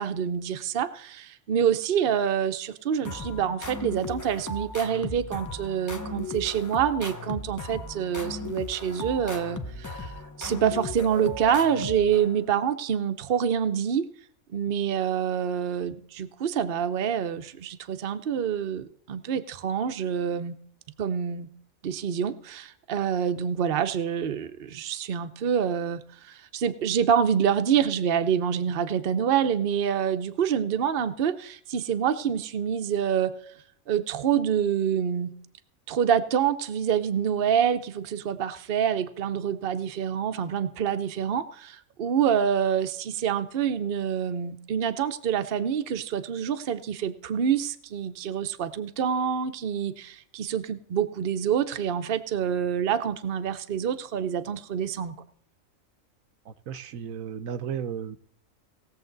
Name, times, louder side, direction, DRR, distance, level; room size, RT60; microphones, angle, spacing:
voice 1, 0.0-10.1 10.4-14.1 14.5-20.6 21.0-21.5 21.8-33.3 33.9-35.3 35.9-55.1, right 8 dB, 50° right, 9 dB, 0.8 m, -26 dB
sound 1, 3.0-12.6, left 1 dB, 20° left, 0.6 m, -36 dB
voice 2, 56.5-58.2, right 8 dB, 80° right, 10 dB, 1.2 m, -34 dB
18.5 x 7.3 x 3.9 m, 0.65 s
omnidirectional pair, 1.4 m